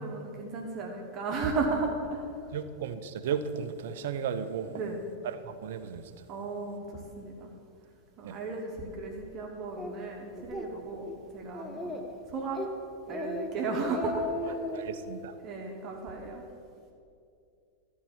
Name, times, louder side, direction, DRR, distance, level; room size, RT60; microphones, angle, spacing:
voice 1, 0.0-2.3 4.6-5.0 6.3-7.5 8.2-12.0 12.3-12.6 13.1-14.6 15.4-16.5, right 3 dB, 35° right, 0 dB, 1.1 m, -35 dB
voice 2, 2.5-4.7 5.4-6.1 8.2-8.4 14.7-15.3, right 7 dB, 55° right, 11 dB, 0.5 m, -34 dB
Speech, 9.8-9.9 10.4-10.7 11.1-11.2 11.5-12.1 12.5-12.7 13.1-13.5 13.8-14.8, left 1 dB, 5° left, 1.0 m, -35 dB
12.5 x 4.6 x 7.1 m, 2.4 s
figure-of-eight pair, 90°, 0 cm